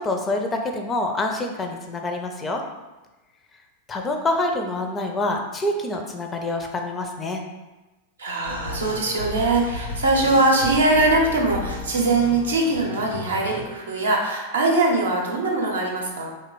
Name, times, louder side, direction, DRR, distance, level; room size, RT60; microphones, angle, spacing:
voice 1, 0.0-2.6 3.9-7.4, left 2 dB, 20° left, 3 dB, 0.4 m, -26 dB
voice 2, 8.2-16.3, right 2 dB, 70° right, -1 dB, 0.7 m, -21 dB
sound 1, 8.4-13.7, left 1 dB, 85° left, 0.6 m, -33 dB
3.2 x 2.1 x 3.8 m, 1.1 s
figure-of-eight pair, 90°, 0 cm